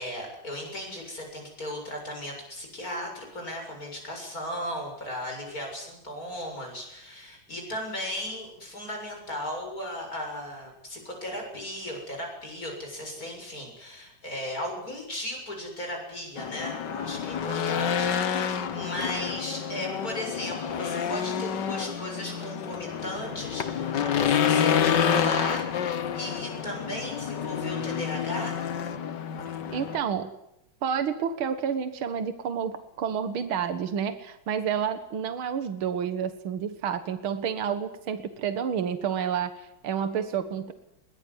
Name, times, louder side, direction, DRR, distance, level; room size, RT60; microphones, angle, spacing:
voice 1, 0.0-28.6, left 1 dB, 40° left, 2 dB, 7.9 m, -36 dB
Race car auto racing / Engine, 16.4-30.0, left 8 dB, 60° left, 1.9 m, -28 dB
voice 2, 29.7-30.3 30.8-40.7, right 7 dB, 80° right, 10 dB, 2.2 m, -29 dB
22.0 x 20.0 x 9.8 m, 0.82 s
omnidirectional pair, 2.2 m